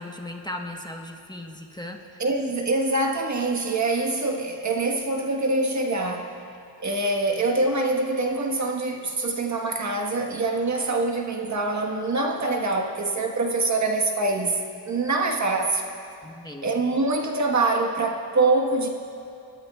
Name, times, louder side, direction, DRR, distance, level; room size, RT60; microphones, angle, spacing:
voice 1, 0.0-2.2 16.2-16.7, left 1 dB, 10° left, 2 dB, 1.2 m, -37 dB
voice 2, 2.2-6.3 6.8-15.8 16.6-18.9, right 2 dB, 45° right, 2 dB, 1.4 m, -24 dB
25.0 x 12.5 x 2.4 m, 2.7 s
cardioid pair, 70°, 39 cm